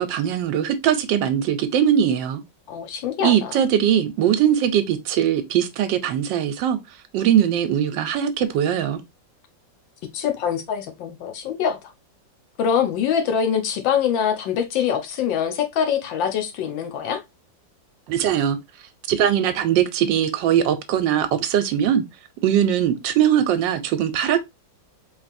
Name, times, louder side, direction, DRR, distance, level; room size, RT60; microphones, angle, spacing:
voice 1, 0.0-2.4 3.2-6.8 7.1-9.0 18.1-18.6 19.1-22.0 22.4-24.5, right 9 dB, 80° right, 1.3 m, -20 dB
voice 2, 2.7-3.5 10.1-11.8 12.6-17.2, left 8 dB, 75° left, 1.5 m, -24 dB
4.5 x 3.2 x 2.5 m
omnidirectional pair, 2.1 m